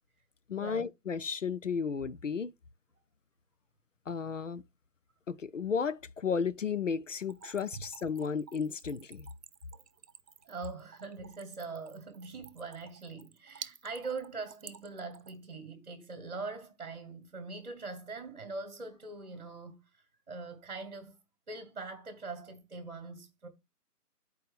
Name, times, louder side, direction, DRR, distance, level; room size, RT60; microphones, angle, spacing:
voice 1, 0.5-2.5 4.1-4.6 5.3-9.3, left 6 dB, 55° left, 0.5 m, -33 dB
Splash splatter / Trickle dribble, 7.2-15.5, right 7 dB, 85° right, 0.8 m, -51 dB
voice 2, 10.5-21.2 21.5-23.5, right 3 dB, 40° right, 1.4 m, -42 dB
12.0 x 4.6 x 3.4 m
figure-of-eight pair, 160°, 48 cm